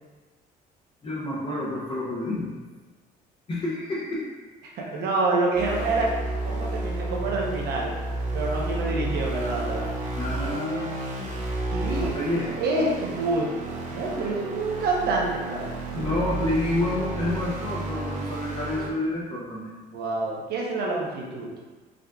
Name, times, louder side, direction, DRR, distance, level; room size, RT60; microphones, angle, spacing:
voice 1, 1.0-2.5 3.5-4.2 4.8-5.0 10.1-10.9 12.0-12.5 15.9-19.7, left 1 dB, 30° left, -7 dB, 0.7 m, -29 dB
voice 2, 4.8-6.1 6.4-7.9 8.3-9.9 11.7-12.2 12.6-13.5 13.9-15.8 19.9-21.5, right 2 dB, 75° right, -2 dB, 0.9 m, -27 dB
sound 1, 5.5-18.9, right 2 dB, 45° right, 0.7 m, -31 dB
4.9 x 2.4 x 2.3 m, 1.3 s
cardioid pair, 110°, 17 cm